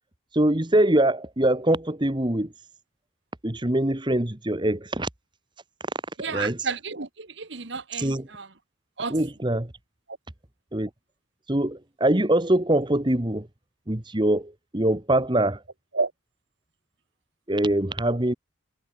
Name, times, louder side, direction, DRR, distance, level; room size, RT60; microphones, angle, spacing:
voice 1, 0.3-2.5 3.4-5.1 6.3-6.7 8.0-8.3 9.1-9.7 10.7-10.9 11.5-13.5 13.9-15.6 17.5-18.3, right 1 dB, 25° right, 1.4 m, -23 dB
voice 2, 6.2-8.5 9.0-9.1 10.1-10.2 15.9-16.1, right 4 dB, 60° right, 1.6 m, -31 dB
head